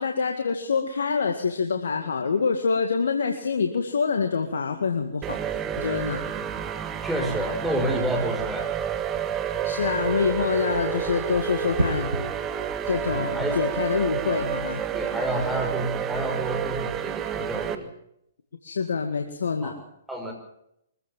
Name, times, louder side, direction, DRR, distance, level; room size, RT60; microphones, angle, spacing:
voice 1, 0.0-5.4 5.8-6.2 9.6-12.3 12.9-14.8 15.5-15.6 18.6-19.7, left 5 dB, 75° left, 5 dB, 2.0 m, -26 dB
sound 1, 5.2-17.7, right 9 dB, 25° right, 1.6 m, -30 dB
voice 2, 6.2-6.5 7.0-8.7 13.1-13.6 14.9-17.9 19.6-19.8 20.1-20.3, right 1 dB, 5° right, 1 dB, 5.8 m, -29 dB
sound 2, 11.8-12.3 14.3-14.6, right 2 dB, 85° right, 6.5 m, -29 dB
24.0 x 15.5 x 7.4 m, 0.78 s
hypercardioid pair, 125°, 0 cm